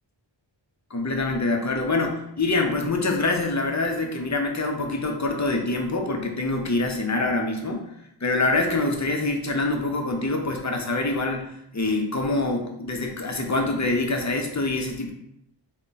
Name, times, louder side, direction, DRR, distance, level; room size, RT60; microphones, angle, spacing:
voice 1, 0.9-7.9 8.2-15.1, left 2 dB, 40° left, 2 dB, 0.7 m, -25 dB
3.5 x 2.2 x 4.0 m, 0.77 s
wide cardioid pair, 55°, 46 cm